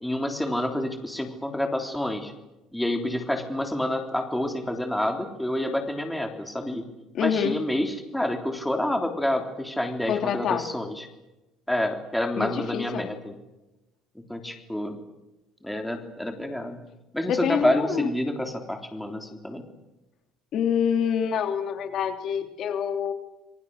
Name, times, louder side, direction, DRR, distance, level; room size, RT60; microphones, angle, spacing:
voice 1, 0.0-2.3 2.7-6.8 7.2-11.1 11.7-13.3 14.2-15.0 15.6-16.8 17.1-19.6, left 1 dB, 5° left, 4 dB, 3.4 m, -28 dB
voice 2, 7.1-7.5 10.1-10.6 12.3-13.1 17.3-18.1 20.5-23.1, left 8 dB, 50° left, 7 dB, 3.2 m, -26 dB
28.0 x 23.0 x 6.5 m, 0.99 s
cardioid pair, 135°, 0 cm